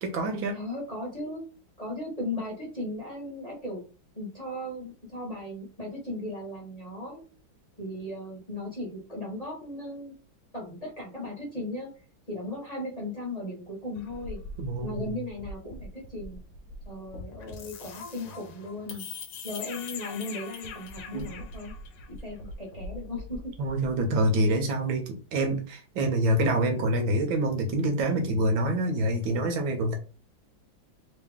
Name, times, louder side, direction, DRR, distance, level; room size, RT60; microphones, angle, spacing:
voice 1, 0.0-0.6 14.6-15.2 21.1-21.3 23.6-30.0, right 1 dB, 80° right, 4 dB, 1.6 m, -26 dB
voice 2, 0.5-1.4 1.8-3.8 4.1-7.2 7.8-10.1 10.5-11.9 12.3-14.4 14.8-16.4 16.8-19.0 19.4-21.7 22.1-23.5, left 1 dB, 20° left, -3 dB, 1.5 m, -37 dB
sound 1, 14.0-24.0, left 3 dB, 70° left, 1.4 m, -42 dB
3.6 x 2.9 x 3.5 m, 0.35 s
omnidirectional pair, 2.1 m